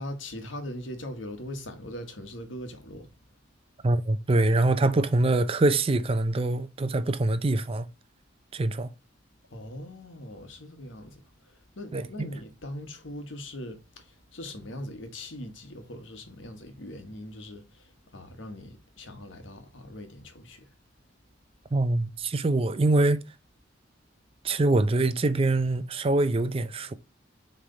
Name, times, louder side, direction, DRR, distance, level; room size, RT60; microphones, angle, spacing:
voice 1, 0.0-3.1 9.5-11.2 11.8-20.7, left 1 dB, 75° left, 1.4 m, -40 dB
voice 2, 3.8-7.9 8.5-8.9 11.9-12.3 21.7-23.2 24.4-26.9, right 2 dB, 30° right, 0.5 m, -24 dB
7.0 x 3.3 x 4.0 m
head